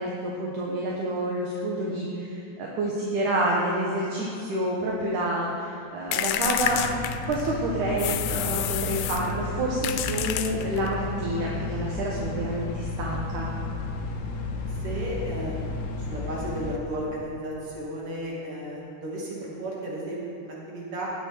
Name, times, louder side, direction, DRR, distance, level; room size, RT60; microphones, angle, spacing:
voice 1, 0.0-6.8 7.3-13.5, right 1 dB, 65° right, -3 dB, 2.2 m, -28 dB
sound 1, 6.1-7.5 8.0-9.3 9.8-10.9, left 12 dB, 90° left, 2.8 m, -29 dB
sound 2, 6.6-16.8, left 3 dB, 75° left, 1.7 m, -33 dB
voice 2, 14.8-21.1, right 1 dB, 35° right, -5 dB, 3.2 m, -34 dB
18.0 x 8.8 x 4.5 m, 2.8 s
omnidirectional pair, 4.9 m